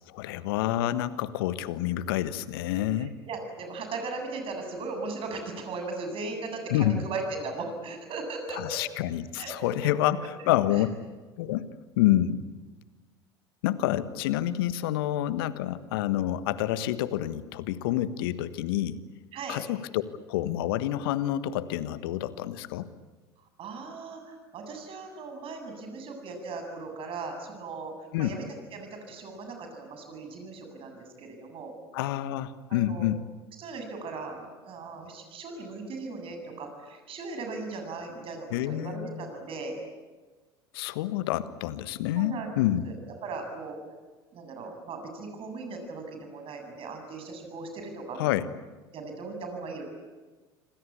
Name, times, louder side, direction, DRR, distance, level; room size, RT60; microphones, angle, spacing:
voice 1, 0.1-3.1 6.7-7.0 8.5-10.2 10.5-10.9 11.4-11.7 12.0-12.5 13.6-19.0 19.5-20.0 20.3-22.9 28.1-28.4 31.9-33.2 38.5-39.3 40.7-42.9 48.1-48.5, left 13 dB, 65° left, 14 dB, 1.4 m, -28 dB
voice 2, 3.0-8.8 9.4-9.5 9.8-9.9 19.3-19.6 23.6-28.5 28.7-31.7 32.7-33.1 33.6-39.7 42.1-42.5 42.8-43.8 44.3-48.3 48.9-49.8, right 3 dB, 45° right, 5 dB, 7.9 m, -38 dB
27.0 x 25.5 x 8.6 m, 1.3 s
figure-of-eight pair, 70°, 13 cm